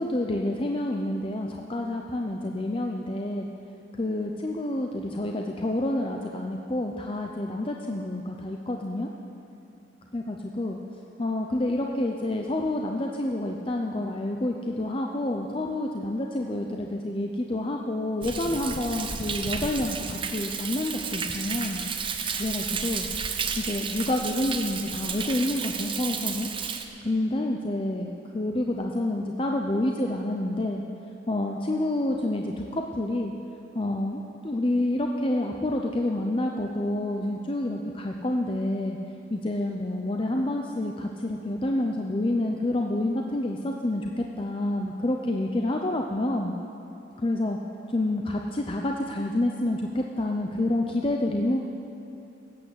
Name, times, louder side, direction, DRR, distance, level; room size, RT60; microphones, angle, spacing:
voice 1, 0.0-3.5 4.0-9.1 10.1-10.8 11.2-21.8 22.4-23.0 23.6-26.5 27.0-30.8 31.3-33.3 33.7-39.0 39.3-46.5 47.2-47.6 47.9-51.6, left 1 dB, 30° left, 1 dB, 0.6 m, -28 dB
Thunder, 18.2-26.8, right 6 dB, 30° right, 0.7 m, -32 dB
14.0 x 8.9 x 8.0 m, 2.8 s
head